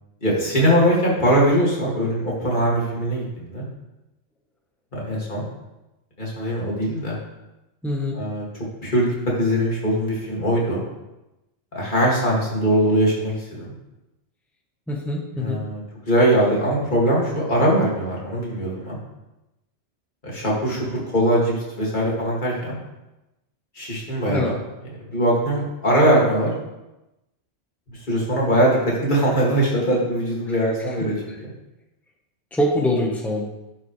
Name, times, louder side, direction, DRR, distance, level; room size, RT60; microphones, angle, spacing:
voice 1, 0.2-3.7 4.9-5.5 6.2-7.2 8.1-8.4 8.8-9.1 9.4-10.8 11.7-13.7 15.4-19.0 20.2-22.8 23.8-24.6 25.1-26.5 28.1-31.5, equal, 40° left, -5 dB, 2.6 m, -21 dB
voice 2, 7.8-8.2 14.9-15.6 24.3-24.5 31.3-31.4 32.5-33.5, left 1 dB, ahead, -1 dB, 1.1 m, -24 dB
11.5 x 5.9 x 3.3 m, 0.97 s
omnidirectional pair, 1.2 m